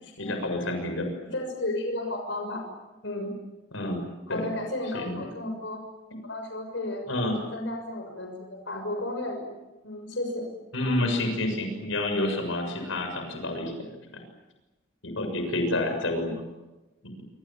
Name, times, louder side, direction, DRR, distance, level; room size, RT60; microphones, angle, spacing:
voice 1, 0.2-1.1 3.7-4.4 4.9-5.2 7.1-7.4 10.7-13.8 14.1-14.2 15.0-16.4 17.0-17.1, left 1 dB, 90° left, 5 dB, 6.9 m, -29 dB
voice 2, 1.3-2.6 3.0-3.3 4.3-5.8 6.2-7.0 7.5-9.5 9.8-10.5 16.2-16.3, left 1 dB, 70° left, 3 dB, 6.3 m, -33 dB
27.5 x 26.5 x 7.4 m, 1.0 s
head